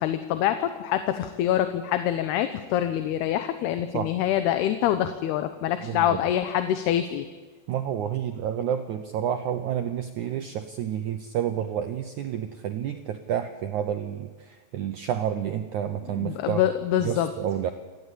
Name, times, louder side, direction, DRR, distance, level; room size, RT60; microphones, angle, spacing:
voice 1, 0.0-7.2 16.2-17.3, left 11 dB, 80° left, 9 dB, 2.9 m, -25 dB
voice 2, 5.8-6.2 7.7-16.7 17.0-17.7, right 9 dB, 85° right, 7 dB, 1.7 m, -30 dB
27.0 x 15.0 x 8.5 m, 1.4 s
omnidirectional pair, 4.8 m